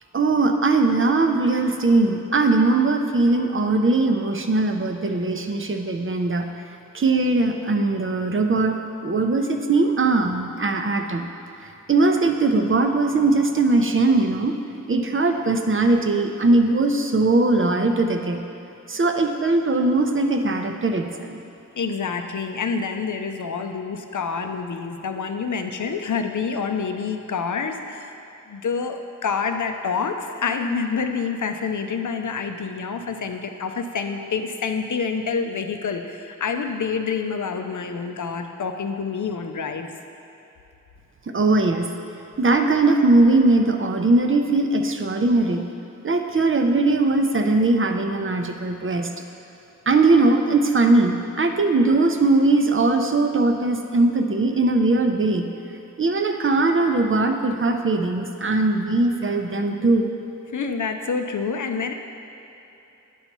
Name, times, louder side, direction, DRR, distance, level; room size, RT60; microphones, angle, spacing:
voice 1, 0.1-6.5 6.9-11.3 11.9-14.5 14.9-18.4 18.9-21.4 41.3-41.9 42.4-45.6 46.0-49.1 49.9-55.5 56.0-60.1, right 2 dB, 40° right, 5 dB, 0.5 m, -20 dB
voice 2, 21.8-28.2 28.5-39.9 60.5-61.9, left 5 dB, 65° left, 6 dB, 0.5 m, -27 dB
9.8 x 5.5 x 3.0 m, 3.0 s
wide cardioid pair, 70°, 32 cm